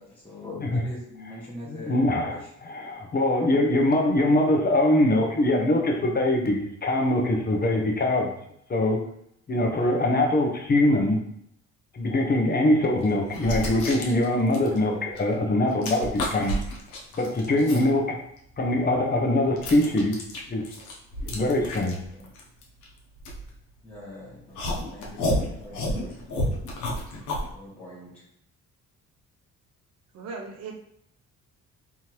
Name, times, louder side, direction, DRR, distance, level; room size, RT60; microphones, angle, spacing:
voice 1, 0.0-2.4 21.8-22.3 23.8-26.2 27.5-28.2, left 2 dB, 5° left, -8 dB, 1.5 m, -42 dB
voice 2, 1.7-8.3 8.7-9.0 9.5-11.2 11.9-16.6 17.2-18.2 18.6-20.1 20.5-20.6 21.2-22.0, left 1 dB, 30° left, 1 dB, 0.8 m, -23 dB
sound 1, 13.0-15.4 15.6-17.9 18.4-24.0 24.6-27.5, left 1 dB, 85° left, 0.9 m, -31 dB
voice 3, 30.1-30.7, right 4 dB, 55° right, 1 dB, 0.7 m, -37 dB
3.5 x 2.8 x 3.0 m, 0.72 s
cardioid pair, 90°, 30 cm